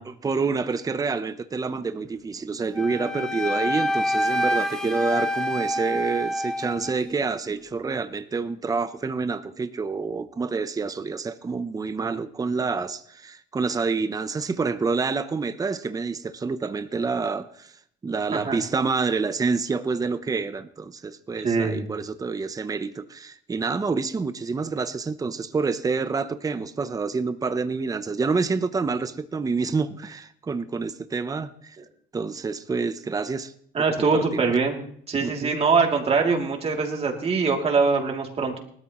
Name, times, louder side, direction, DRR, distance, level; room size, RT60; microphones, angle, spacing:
voice 1, 0.1-17.7 18.0-31.8 32.1-33.5 33.8-34.4 35.2-35.6, right 4 dB, 20° right, 11 dB, 0.8 m, -28 dB
Wind instrument woodwind instrument, 2.7-7.0, left 1 dB, 5° left, 2.0 m, -26 dB
voice 2, 21.4-21.8 33.7-34.8 35.1-38.6, right 4 dB, 35° right, 1 dB, 2.9 m, -23 dB
19.5 x 13.0 x 3.1 m, 0.63 s
cardioid pair, 110°, 17 cm